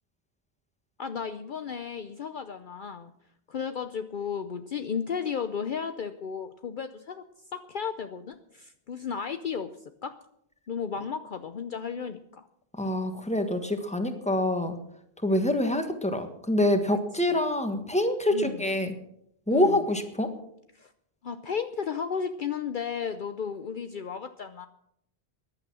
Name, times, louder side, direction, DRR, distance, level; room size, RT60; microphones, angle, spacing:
voice 1, 1.0-3.1 3.5-7.2 7.5-9.7 10.0-10.1 10.7-12.5 17.3-17.4 18.3-18.6 19.5-19.8 20.7-20.9 21.2-24.7, left 6 dB, 55° left, 9 dB, 0.8 m, -34 dB
voice 2, 12.8-14.8 15.2-18.9 19.5-20.3, left 1 dB, 5° left, 7 dB, 1.4 m, -26 dB
15.0 x 11.0 x 6.2 m, 0.74 s
omnidirectional pair, 1.1 m